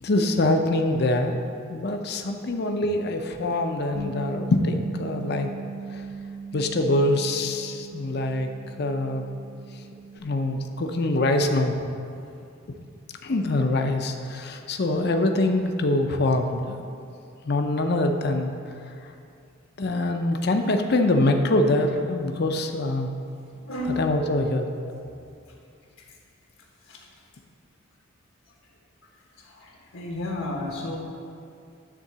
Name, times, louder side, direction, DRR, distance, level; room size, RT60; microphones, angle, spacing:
voice 1, 0.0-1.4 1.7-5.5 6.5-8.5 8.8-9.2 10.2-11.7 13.2-16.8 17.4-18.5 19.8-23.1 24.0-24.6, left 2 dB, 50° left, 5 dB, 0.6 m, -24 dB
Bass guitar, 3.9-10.2, right 4 dB, 40° right, 0.9 m, -39 dB
voice 2, 23.7-24.0 24.8-24.9 26.9-27.1 29.4-31.0, left 1 dB, 85° left, -2 dB, 1.4 m, -32 dB
10.0 x 3.7 x 6.8 m, 2.5 s
head